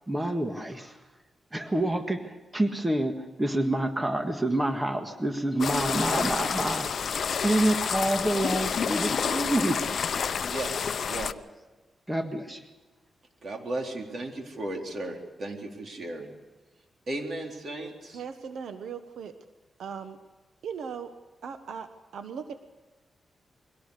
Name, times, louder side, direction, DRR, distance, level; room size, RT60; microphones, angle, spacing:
voice 1, 0.1-0.9 1.5-6.9 7.4-9.8 12.1-12.6, right 1 dB, 15° right, 5 dB, 1.6 m, -27 dB
sound 1, 5.6-11.3, left 6 dB, 60° left, 0.7 m, -29 dB
voice 2, 11.0-11.3 13.4-16.3 17.1-18.2, right 2 dB, 55° right, 2 dB, 3.9 m, -35 dB
voice 3, 18.1-19.3 19.8-20.2 20.6-21.1 21.4-22.5, right 6 dB, 85° right, 8 dB, 1.2 m, -38 dB
23.0 x 17.5 x 6.7 m, 1.2 s
cardioid pair, 100°, 0 cm